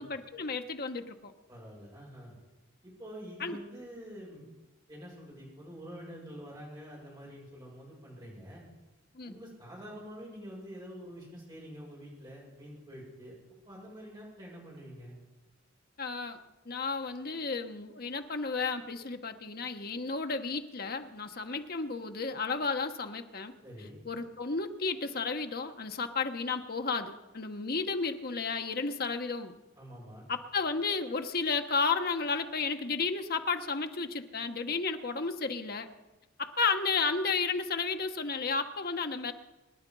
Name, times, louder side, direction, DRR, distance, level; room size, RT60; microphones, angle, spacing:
voice 1, 0.0-1.3 3.4-3.6 9.1-9.4 16.0-16.4 16.6-23.5 24.0-29.5 30.3-35.9 36.4-39.3, left 4 dB, 50° left, 6 dB, 1.2 m, -32 dB
voice 2, 1.5-2.3 2.8-4.5 4.9-8.6 9.2-13.3 13.7-15.2 23.6-24.0 29.8-30.2, equal, 20° right, -4 dB, 7.2 m, -46 dB
25.0 x 10.5 x 5.5 m, 1.1 s
head